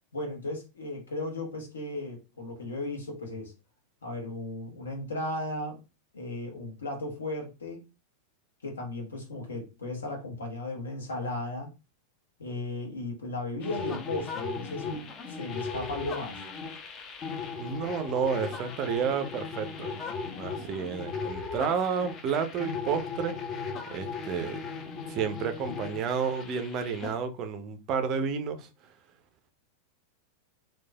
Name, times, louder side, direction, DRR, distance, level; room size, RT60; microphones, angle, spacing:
voice 1, 0.1-3.5 4.0-5.8 6.1-7.8 8.6-11.7 12.4-16.4, left 2 dB, 70° left, 0.9 m, -35 dB
sound 1, 13.6-27.1, left 5 dB, 30° left, 0.5 m, -37 dB
voice 2, 17.6-19.9 20.4-23.4 23.9-24.7 25.1-28.7, right 6 dB, 35° right, 0.4 m, -31 dB
3.1 x 2.2 x 2.2 m
figure-of-eight pair, 90°, 0 cm